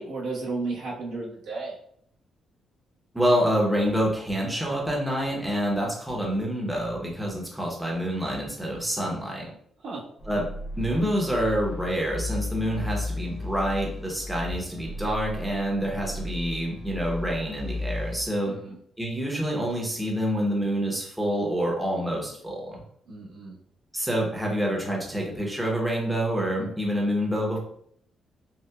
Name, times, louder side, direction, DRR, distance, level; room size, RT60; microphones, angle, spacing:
voice 1, 0.0-1.8 9.8-10.0 18.4-18.7 23.1-23.6, right 3 dB, 85° right, -5 dB, 1.2 m, -33 dB
voice 2, 3.1-9.5 10.2-10.4 10.8-18.5 19.0-22.8 23.9-27.6, equal, 5° right, -2 dB, 0.7 m, -27 dB
sound 1, 10.2-18.3, left 2 dB, 40° left, 0.8 m, -35 dB
5.4 x 2.1 x 2.3 m, 0.66 s
cardioid pair, 150°, 0 cm